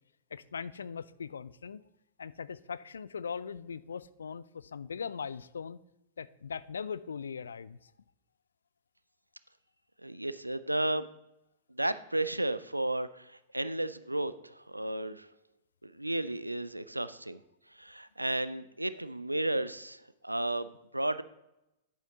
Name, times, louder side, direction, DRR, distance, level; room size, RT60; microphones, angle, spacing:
voice 1, 0.3-1.8 2.2-5.8 6.2-7.9, left 6 dB, 70° left, 18 dB, 0.3 m, -40 dB
voice 2, 10.0-11.1 11.7-15.3 15.8-17.4 17.7-21.2, right 1 dB, 85° right, 14 dB, 0.4 m, -33 dB
10.5 x 8.3 x 2.7 m, 0.90 s
figure-of-eight pair, 100°, 0 cm